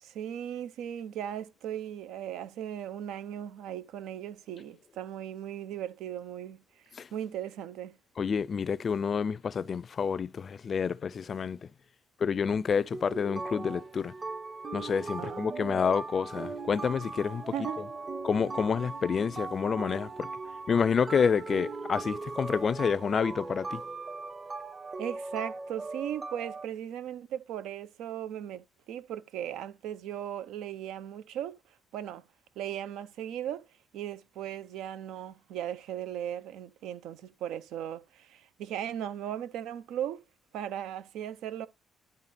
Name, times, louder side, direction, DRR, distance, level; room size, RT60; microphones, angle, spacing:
voice 1, 0.0-6.8 7.1-8.0 15.2-15.8 17.5-17.8 25.0-32.3 32.6-33.7 33.9-40.2 40.5-41.7, right 10 dB, 85° right, 0.6 m, -37 dB
voice 2, 8.2-11.6 12.2-14.1 14.7-17.4 18.2-20.3 20.7-23.8, left 6 dB, 50° left, 0.4 m, -28 dB
sound 1, 12.9-26.6, right 3 dB, 30° right, 0.9 m, -39 dB
10.5 x 3.6 x 4.2 m
supercardioid pair, 75°, 0 cm